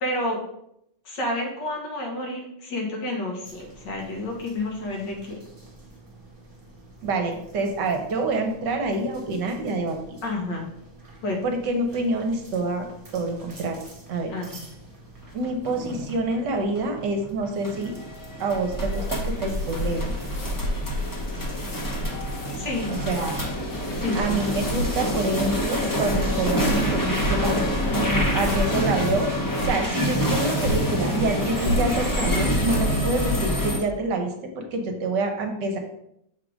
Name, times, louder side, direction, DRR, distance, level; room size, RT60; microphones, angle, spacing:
voice 1, 0.0-0.4 1.1-5.4 10.2-10.7 11.2-11.4 14.3-14.6 22.5-23.0 23.9-24.4, left 1 dB, 65° left, 0 dB, 2.0 m, -30 dB
sound 1, 3.4-20.8, right 1 dB, 20° right, 1.2 m, -46 dB
voice 2, 7.0-10.0 11.4-12.9 13.1-13.8 14.1-14.3 15.3-17.9 18.4-20.1 22.9-23.4 24.1-27.6 27.9-29.3 29.6-35.8, right 2 dB, 65° right, 4 dB, 1.4 m, -27 dB
sound 2, 15.2-33.8, equal, 30° left, 0.3 m, -27 dB
sound 3, 18.5-33.5, equal, 45° left, 1.4 m, -31 dB
6.6 x 3.8 x 4.9 m, 0.76 s
omnidirectional pair, 2.1 m